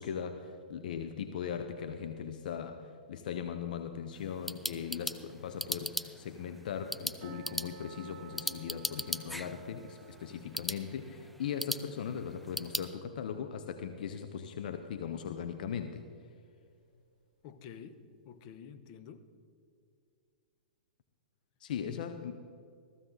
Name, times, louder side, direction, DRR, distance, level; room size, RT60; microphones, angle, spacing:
voice 1, 0.0-16.0 21.6-22.4, left 7 dB, 65° left, 8 dB, 0.8 m, -39 dB
sound 1, 4.1-12.9, equal, ahead, 0.5 m, -40 dB
sound 2, 7.2-14.1 14.3-14.4 15.0-15.1 15.6-15.7, right 5 dB, 50° right, 1.0 m, -55 dB
voice 2, 17.4-18.0 18.2-19.3 21.9-22.1, left 7 dB, 45° left, 10 dB, 0.9 m, -49 dB
15.0 x 14.5 x 3.9 m, 2.3 s
hypercardioid pair, 125°, 5 cm